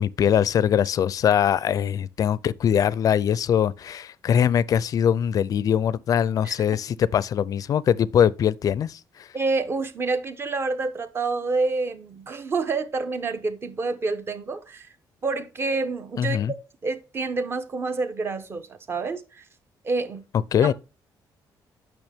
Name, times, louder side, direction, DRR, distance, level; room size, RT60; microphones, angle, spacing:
voice 1, 0.0-9.3 16.2-16.5 20.5-20.7, left 9 dB, 50° left, 0.4 m, -22 dB
voice 2, 9.3-14.9 15.2-16.4 16.8-19.4 19.8-20.3 20.6-20.7, right 3 dB, 30° right, 0.9 m, -28 dB
8.9 x 6.1 x 3.5 m
cardioid pair, 135°, 8 cm